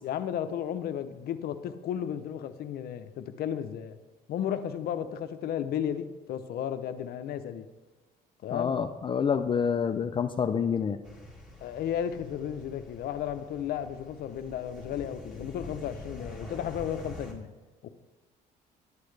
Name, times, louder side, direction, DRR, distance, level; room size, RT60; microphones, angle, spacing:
voice 1, 0.0-4.0 4.3-7.6 8.4-8.8 11.6-17.5 17.8-17.9, left 9 dB, 65° left, 9 dB, 0.7 m, -34 dB
voice 2, 8.5-11.0, left 7 dB, 30° left, 8 dB, 0.4 m, -27 dB
sound 1, 11.0-17.3, left 1 dB, 5° right, 1.9 m, -46 dB
11.0 x 8.5 x 3.3 m, 1.2 s
cardioid pair, 110°, 17 cm